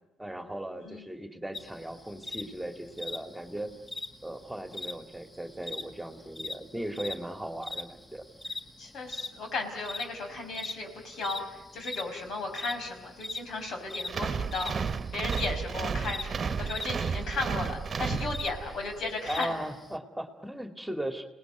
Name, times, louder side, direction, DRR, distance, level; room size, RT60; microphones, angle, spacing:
voice 1, 0.2-3.7 4.2-8.2 19.3-21.2, right 1 dB, 5° right, 6 dB, 2.3 m, -37 dB
sound 1, 1.5-20.0, left 2 dB, 15° left, 1.7 m, -41 dB
voice 2, 8.8-14.7 15.1-19.5, left 3 dB, 70° left, 4 dB, 5.3 m, -35 dB
sound 2, 14.1-18.8, right 5 dB, 45° right, 1.2 m, -32 dB
28.5 x 19.0 x 9.4 m, 1.0 s
supercardioid pair, 75°, 0 cm